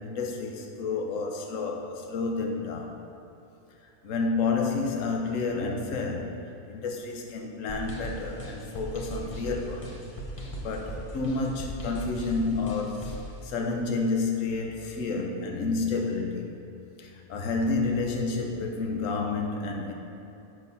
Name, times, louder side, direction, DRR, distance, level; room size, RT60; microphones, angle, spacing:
voice 1, 0.0-3.0 4.0-6.3 6.7-9.9 10.6-13.1 13.4-16.5 17.0-19.9, left 3 dB, 70° left, 2 dB, 1.2 m, -30 dB
sound 1, 7.7-13.3, right 1 dB, 30° left, 0.8 m, -38 dB
7.9 x 6.1 x 5.4 m, 2.8 s
omnidirectional pair, 1.4 m